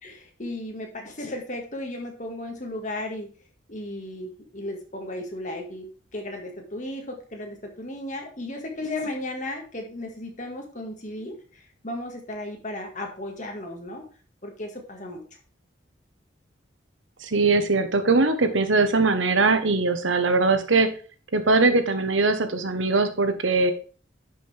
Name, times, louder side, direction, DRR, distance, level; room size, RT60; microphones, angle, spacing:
voice 1, 0.0-3.3 3.7-14.1 14.4-15.2, left 1 dB, 40° left, 2 dB, 2.0 m, -35 dB
voice 2, 17.2-20.9 21.3-23.7, right 3 dB, 90° right, 9 dB, 1.2 m, -21 dB
10.5 x 6.1 x 3.5 m, 0.39 s
head